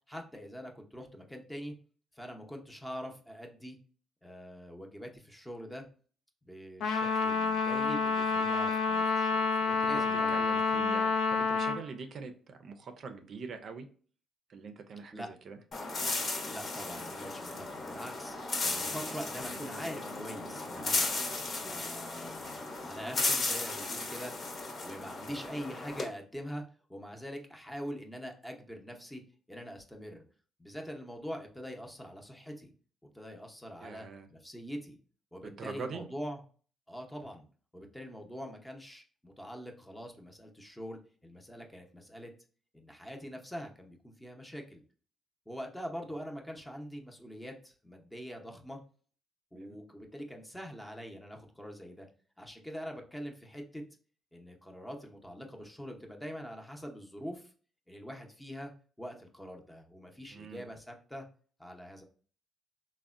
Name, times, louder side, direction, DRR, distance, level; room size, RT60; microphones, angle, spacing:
voice 1, 0.1-1.7 2.1-3.8 4.2-5.9 6.4-10.8 15.1-15.3 16.5-18.4 18.6-21.1 21.6-24.3 24.8-26.6 26.9-29.2 29.5-30.2 30.6-32.7 33.1-35.0 35.3-36.4 36.9-37.5 37.7-42.3 42.7-44.8 45.5-48.8 49.5-52.1 52.4-53.8 54.3-57.5 57.9-58.7 59.0-61.3 61.6-62.0, equal, 5° left, 2 dB, 0.7 m, -44 dB
Trumpet, 6.8-11.8, left 4 dB, 75° left, 0.4 m, -28 dB
voice 2, 9.6-13.9 14.5-15.6 33.8-34.3 35.4-36.1 49.5-49.8 60.3-60.7, right 4 dB, 60° right, 7 dB, 0.4 m, -44 dB
sound 1, 15.7-26.1, left 3 dB, 50° left, 0.9 m, -35 dB
3.5 x 2.1 x 2.4 m, 0.42 s
cardioid pair, 90°, 0 cm